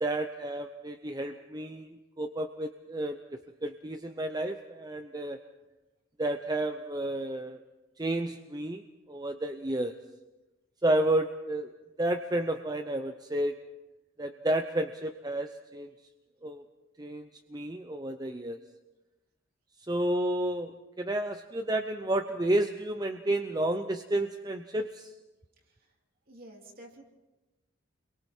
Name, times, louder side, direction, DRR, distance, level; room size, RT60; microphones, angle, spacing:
voice 1, 0.0-5.4 6.2-7.6 8.0-9.9 10.8-11.7 12.0-13.6 14.2-15.9 16.4-16.6 17.0-18.6 19.9-25.1, right 1 dB, 20° right, 7 dB, 0.6 m, -31 dB
voice 2, 26.3-27.0, right 1 dB, 45° right, 0 dB, 3.3 m, -49 dB
29.5 x 23.0 x 4.4 m, 1.1 s
head